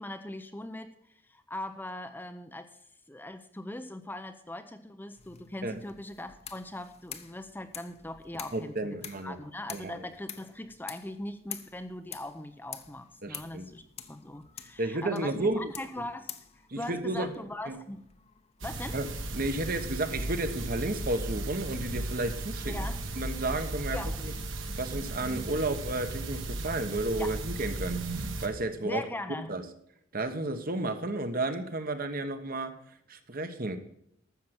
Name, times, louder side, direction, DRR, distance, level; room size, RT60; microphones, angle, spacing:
voice 1, 0.0-2.8 3.1-13.8 14.1-18.0 18.6-19.0 22.7-23.0 23.9-24.2 27.2-27.4 28.8-29.6, left 1 dB, 10° left, 8 dB, 0.6 m, -40 dB
sound 1, 5.2-19.8, left 9 dB, 30° left, 0.9 m, -48 dB
voice 2, 8.5-9.4 9.7-10.0 13.2-13.7 14.8-15.7 16.7-17.3 17.7-17.8 18.9-19.1 19.3-22.8 23.2-24.3 24.8-29.0 29.5-29.6 30.1-32.7 33.1-33.8, right 2 dB, 45° right, 8 dB, 1.2 m, -32 dB
sound 2, 18.6-28.5, right 2 dB, 70° right, 1.8 m, -35 dB
13.0 x 7.6 x 5.9 m, 0.73 s
head